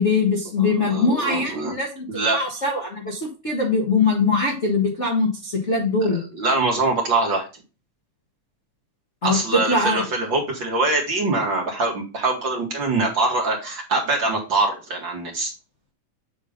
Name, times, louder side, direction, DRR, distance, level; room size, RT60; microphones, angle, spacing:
voice 1, 0.0-2.0 2.3-6.2 9.2-10.0, left 3 dB, 35° left, 0 dB, 1.1 m, -22 dB
voice 2, 0.6-1.7 2.1-2.4 6.1-7.5 9.2-15.5, right 3 dB, 40° right, -1 dB, 2.3 m, -23 dB
8.4 x 3.6 x 5.2 m, 0.32 s
omnidirectional pair, 3.8 m